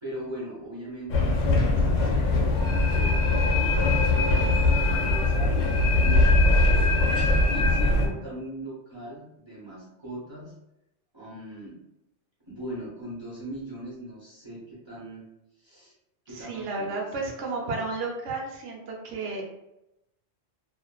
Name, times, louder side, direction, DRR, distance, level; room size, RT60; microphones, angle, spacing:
voice 1, 0.0-6.5 7.1-10.5 11.1-11.8 12.5-15.2 15.6-15.9 16.3-17.9, right 1 dB, 30° right, -8 dB, 0.6 m, -40 dB
sound 1, 1.1-8.1, left 2 dB, 80° left, 0.9 m, -21 dB
voice 2, 16.3-19.4, right 3 dB, 80° right, 0 dB, 1.0 m, -32 dB
2.5 x 2.4 x 2.2 m, 0.88 s
omnidirectional pair, 1.2 m